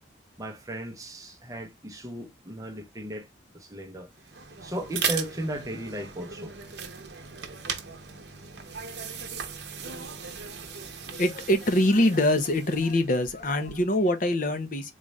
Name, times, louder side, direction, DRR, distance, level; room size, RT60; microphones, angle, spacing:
voice 1, 0.4-3.3 3.5-4.1 4.6-6.6, right 1 dB, 20° right, 0.7 m, -36 dB
sound 1, 4.1-14.0, right 6 dB, 65° right, 0.8 m, -38 dB
voice 2, 11.1-14.9, left 1 dB, 45° left, 0.7 m, -24 dB
4.0 x 2.4 x 3.1 m
head